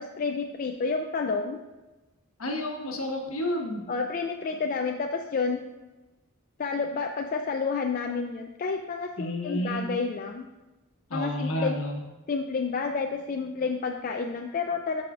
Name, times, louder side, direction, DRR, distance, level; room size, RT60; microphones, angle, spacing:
voice 1, 0.0-1.6 3.9-5.6 6.6-10.5 11.1-11.8 12.3-15.0, left 4 dB, 40° left, 3 dB, 0.3 m, -30 dB
voice 2, 2.4-3.8 9.2-9.9 11.1-12.0, left 1 dB, 70° left, 1 dB, 1.1 m, -30 dB
12.5 x 4.8 x 2.4 m, 1.1 s
head